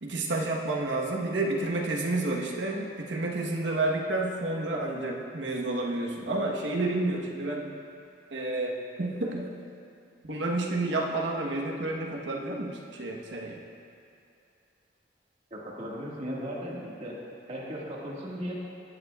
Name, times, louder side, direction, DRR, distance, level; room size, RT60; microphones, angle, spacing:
voice 1, 0.0-7.8 8.3-9.5 10.2-13.6, right 2 dB, 90° right, -1 dB, 1.2 m, -30 dB
voice 2, 15.5-17.2 17.5-18.5, equal, 40° right, -5 dB, 1.9 m, -36 dB
16.5 x 9.7 x 2.4 m, 2.6 s
head